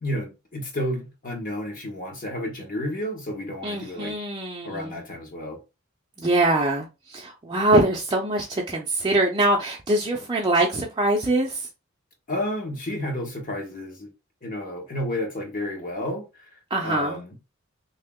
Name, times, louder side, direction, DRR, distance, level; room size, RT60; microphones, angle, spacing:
voice 1, 0.0-4.1 4.6-5.6 12.3-14.1 14.4-16.5 16.8-17.4, left 1 dB, 40° left, 1.1 m, -31 dB
voice 2, 3.6-5.0 6.2-6.8 7.1-11.6 16.7-17.2, right 1 dB, 20° right, 0.5 m, -23 dB
3.0 x 2.8 x 3.5 m
head